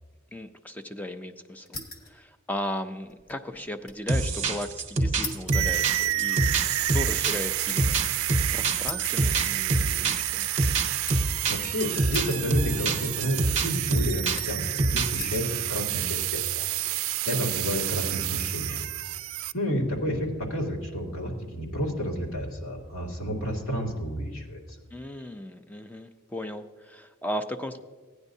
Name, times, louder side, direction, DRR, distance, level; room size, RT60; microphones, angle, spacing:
voice 1, 0.3-1.8 2.0-10.5 17.3-17.5 24.9-27.8, left 1 dB, 10° left, 8 dB, 0.4 m, -36 dB
sound 1, 1.7-2.2 2.5-4.1 4.4-4.5 5.2-8.1 8.8-10.0 10.3-11.4 12.1-13.0 13.2-13.8 14.4-14.7 15.2-15.6 16.2-16.7, left 3 dB, 50° left, 1.1 m, -41 dB
sound 2, 4.1-15.2, right 2 dB, 30° right, 0.9 m, -26 dB
sound 3, 5.5-19.5, right 16 dB, 85° right, 0.3 m, -29 dB
voice 2, 11.5-16.7 17.0-18.9 19.5-24.6, equal, 90° left, -2 dB, 2.4 m, -30 dB
16.5 x 9.7 x 2.7 m, 1.5 s
head